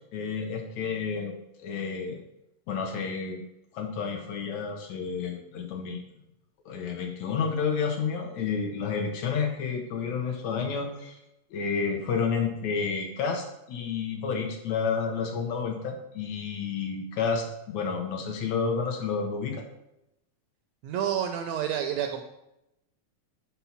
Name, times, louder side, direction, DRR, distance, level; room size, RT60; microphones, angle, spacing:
voice 1, 0.1-1.3 1.6-2.2 2.7-3.4 3.7-6.0 6.7-11.2 11.5-19.7, left 5 dB, 70° left, 3 dB, 2.0 m, -30 dB
voice 2, 20.8-22.2, right 9 dB, 80° right, 5 dB, 1.6 m, -29 dB
5.7 x 4.3 x 5.7 m, 0.87 s
omnidirectional pair, 3.5 m